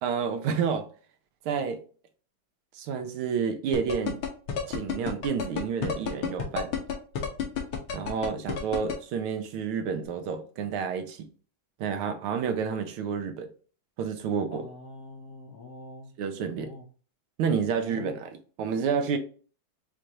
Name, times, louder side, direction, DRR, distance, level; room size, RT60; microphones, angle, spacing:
voice 1, 0.0-0.9 1.4-1.8 2.7-4.2 4.7-6.8 7.9-11.3 11.8-13.5 14.0-14.7 16.2-16.7 17.4-19.2, right 6 dB, 80° right, 1.6 m, -29 dB
sound 1, 3.7-8.9, left 7 dB, 80° left, 2.0 m, -29 dB
voice 2, 14.5-16.1 16.6-16.8 17.8-18.1, left 2 dB, 55° left, 1.0 m, -44 dB
6.4 x 2.5 x 2.9 m
omnidirectional pair, 2.3 m